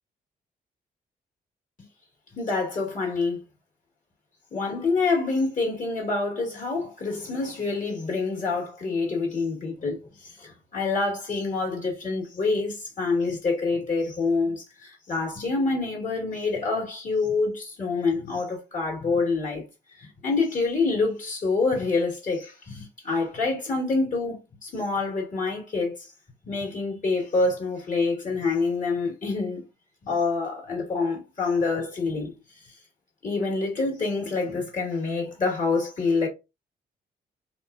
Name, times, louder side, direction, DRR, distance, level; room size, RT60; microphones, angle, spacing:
voice 1, 2.3-3.4 4.5-19.6 20.0-26.1 26.4-29.6 30.0-32.4 32.6-32.7 33.2-36.3, left 3 dB, 45° left, 1.6 m, -27 dB
2.9 x 2.2 x 2.4 m
supercardioid pair, 60°, 18 cm